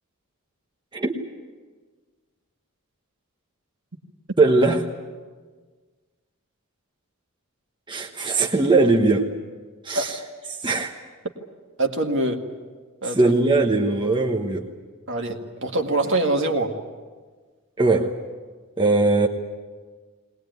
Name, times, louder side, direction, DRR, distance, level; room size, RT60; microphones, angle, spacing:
voice 1, 4.4-4.9 7.9-9.3 9.8-10.2 10.6-10.9 13.0-14.7 17.8-18.2 18.8-19.3, right 3 dB, 20° right, 1 dB, 1.2 m, -20 dB
voice 2, 11.8-12.4 13.0-13.4 15.1-16.7, right 2 dB, 55° right, 3 dB, 2.0 m, -24 dB
21.0 x 19.5 x 9.3 m, 1.5 s
head